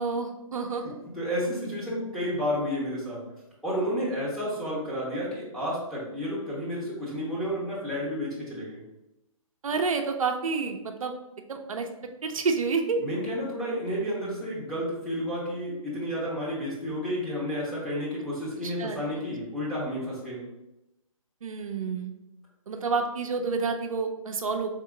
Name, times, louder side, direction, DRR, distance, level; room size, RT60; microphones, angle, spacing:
voice 1, 0.0-1.0 9.6-11.1 11.5-11.9 12.2-13.0 18.6-19.0 21.4-22.1 22.7-24.7, right 4 dB, 70° right, 4 dB, 0.6 m, -29 dB
voice 2, 0.8-3.2 3.6-8.8 13.0-20.4, equal, ahead, -8 dB, 0.8 m, -31 dB
3.6 x 2.7 x 3.7 m, 0.92 s
hypercardioid pair, 150°, 18 cm